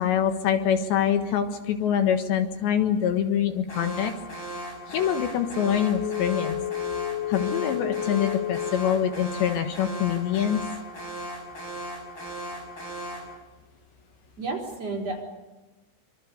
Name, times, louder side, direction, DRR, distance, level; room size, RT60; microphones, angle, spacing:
voice 1, 0.0-4.1 4.9-6.6 7.3-10.6, left 9 dB, 70° left, 7 dB, 3.6 m, -25 dB
Alarm, 3.7-13.4, right 1 dB, 25° left, 7.4 m, -37 dB
Telephone, 5.8-8.9 9.3-9.4, left 13 dB, 5° left, 7.3 m, -31 dB
voice 2, 14.4-15.2, right 3 dB, 35° right, -1 dB, 4.8 m, -31 dB
25.5 x 25.0 x 6.8 m, 1.1 s
omnidirectional pair, 5.5 m